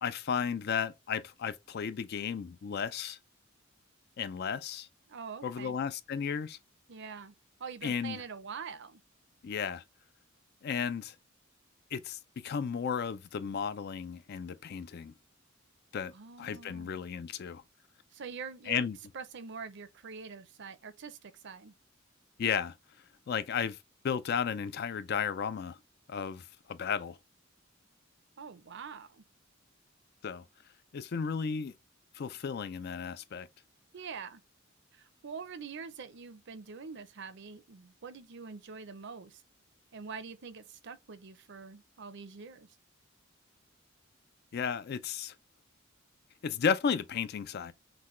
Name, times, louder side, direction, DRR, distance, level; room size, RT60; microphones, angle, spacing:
voice 1, 0.0-3.2 4.2-4.9 5.4-6.6 7.8-8.2 9.4-9.8 10.6-11.2 11.9-15.1 15.9-16.1 16.4-17.6 18.7-19.0 22.4-22.8 23.3-23.8 24.0-25.8 26.1-27.2 30.2-30.4 30.9-31.7 32.1-33.5 44.5-45.3 46.4-47.7, left 7 dB, 50° left, 0.4 m, -34 dB
voice 2, 5.1-5.7 6.9-7.3 7.6-9.0 16.1-17.0 18.1-18.9 19.1-21.7 28.4-29.2 33.9-34.4 34.9-39.4 39.9-42.7, right 5 dB, 60° right, 0.6 m, -44 dB
6.0 x 2.2 x 3.1 m
head